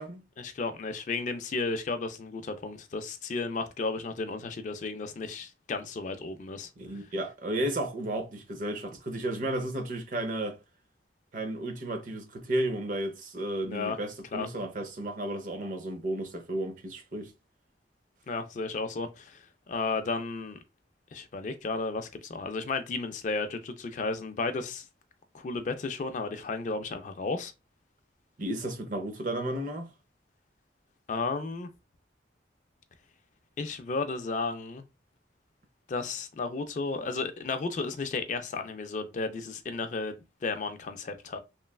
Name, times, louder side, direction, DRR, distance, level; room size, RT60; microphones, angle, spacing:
voice 1, 0.4-6.7 13.6-14.0 14.3-14.5 18.3-20.6 21.1-24.8 25.3-27.5 31.1-31.7 33.6-34.9 35.9-41.4, left 3 dB, 40° left, 0.3 m, -33 dB
voice 2, 6.8-10.6 11.3-17.3 28.4-29.9, right 1 dB, 45° right, 0.5 m, -33 dB
3.0 x 2.2 x 2.3 m
head